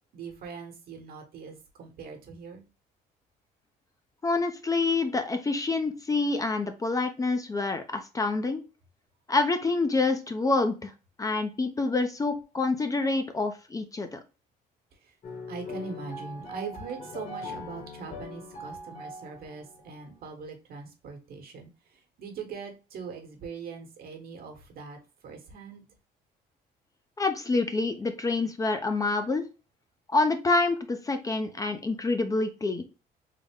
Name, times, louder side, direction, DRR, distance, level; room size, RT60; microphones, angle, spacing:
voice 1, 0.1-2.6 15.5-21.7 22.2-25.0 25.2-25.9, right 5 dB, 60° right, 4 dB, 1.1 m, -41 dB
voice 2, 4.2-8.6 9.3-10.9 11.2-14.2 27.2-29.4 30.1-32.8, left 3 dB, 20° left, 7 dB, 0.4 m, -27 dB
sound 1, 15.2-19.9, left 2 dB, 45° left, 1.2 m, -41 dB
3.7 x 2.1 x 3.4 m, 0.31 s
cardioid pair, 110°, 17 cm